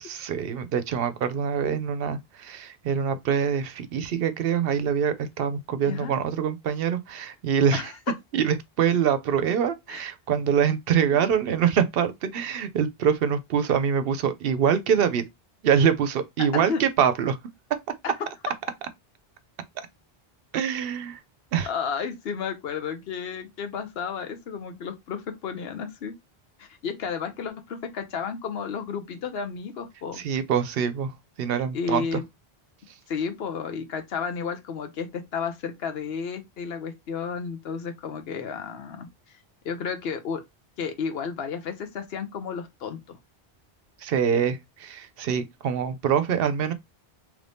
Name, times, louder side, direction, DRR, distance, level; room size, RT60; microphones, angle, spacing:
voice 1, 0.0-7.9 8.3-15.2 15.6-17.4 20.5-21.2 21.5-21.7 30.2-31.1 31.4-32.0 44.0-46.7, right 7 dB, 70° right, 0.7 m, -24 dB
voice 2, 21.6-26.1 26.6-30.2 31.7-32.2 33.1-39.4 39.6-40.4 40.8-43.2, left 6 dB, 75° left, 0.9 m, -32 dB
3.1 x 2.6 x 3.3 m
omnidirectional pair, 1.0 m